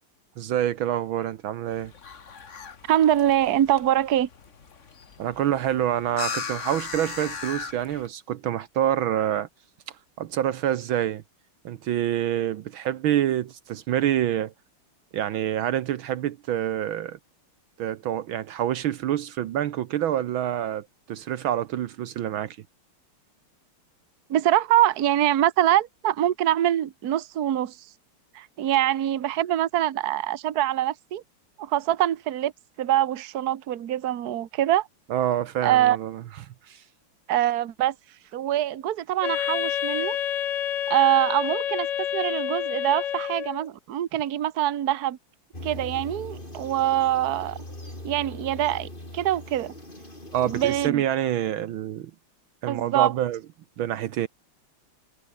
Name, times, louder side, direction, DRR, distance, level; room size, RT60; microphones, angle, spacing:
voice 1, 0.4-1.9 5.2-9.5 10.2-11.2 11.6-14.5 15.1-17.2 17.8-22.6 35.1-36.8 50.3-52.1 52.6-53.4 53.8-54.3, right 11 dB, 70° right, 1.6 m, -27 dB
sound 1, 1.7-8.1, left 6 dB, 35° left, 1.7 m, -38 dB
voice 2, 2.9-4.3 24.3-27.8 28.3-31.2 31.6-32.5 32.8-34.9 35.6-36.0 37.3-37.9 38.3-40.2 40.9-41.9 42.1-45.2 45.6-47.6 48.0-48.9 49.1-49.7 50.5-51.0 52.7-53.1, right 12 dB, 50° right, 1.5 m, -24 dB
Wind instrument woodwind instrument, 39.2-43.7, left 10 dB, 70° left, 0.7 m, -28 dB
sound 2, 45.5-50.9, left 1 dB, 20° left, 7.2 m, -40 dB
omnidirectional pair, 2.4 m